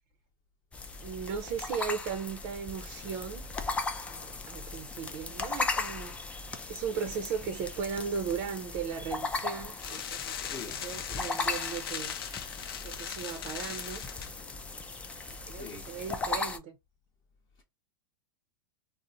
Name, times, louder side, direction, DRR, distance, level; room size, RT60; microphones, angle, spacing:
sound 1, 0.7-16.6, left 3 dB, 10° left, 0.3 m, -37 dB
voice 1, 1.0-3.5 4.1-12.1 12.8-14.0 15.5-16.8, right 6 dB, 45° right, 0.6 m, -37 dB
sound 2, 9.8-14.3, left 9 dB, 80° left, 0.5 m, -39 dB
voice 2, 10.4-10.8 15.5-15.9, left 5 dB, 30° left, 0.8 m, -44 dB
2.5 x 2.0 x 3.9 m
supercardioid pair, 140°, 12 cm